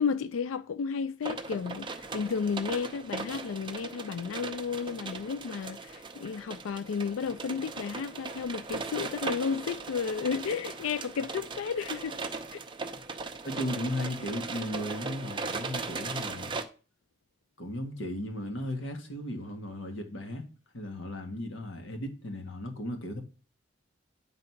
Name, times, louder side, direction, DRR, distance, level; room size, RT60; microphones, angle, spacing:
voice 1, 0.0-12.2 12.5-12.6, left 6 dB, 90° left, 0.4 m, -32 dB
sound 1, 1.2-16.6, right 4 dB, 25° right, 0.7 m, -38 dB
voice 2, 13.4-16.6 17.6-20.4 20.7-23.2, left 1 dB, 75° left, 1.6 m, -36 dB
9.4 x 4.0 x 5.7 m
head